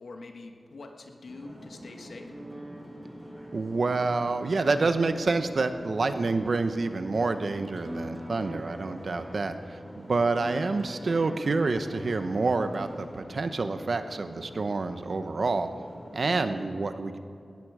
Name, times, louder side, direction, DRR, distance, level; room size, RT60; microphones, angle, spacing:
voice 1, 0.0-2.3, left 3 dB, 90° left, 4 dB, 1.4 m, -44 dB
sound 1, 1.3-16.3, equal, 5° left, 4.6 m, -46 dB
sound 2, 2.2-13.0, right 1 dB, 35° right, 1.8 m, -45 dB
voice 2, 3.5-15.7 16.1-17.2, right 3 dB, 65° right, 9 dB, 0.9 m, -28 dB
18.0 x 13.5 x 4.9 m, 2.5 s
wide cardioid pair, 85°, 0 cm